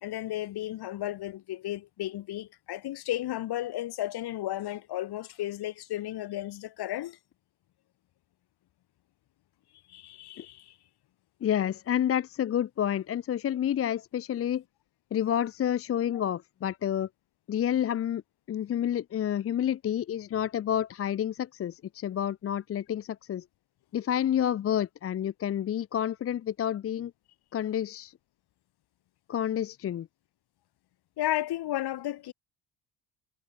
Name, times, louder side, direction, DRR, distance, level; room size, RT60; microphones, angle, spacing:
voice 1, 0.0-7.2 9.9-10.7 31.2-32.3, left 14 dB, 50° left, 2.4 m, -33 dB
voice 2, 11.4-14.6 15.1-17.1 17.5-18.2 18.5-23.4 23.9-27.1 27.5-28.1 29.3-30.1, left 10 dB, 30° left, 0.7 m, -29 dB
hypercardioid pair, 60°, 49 cm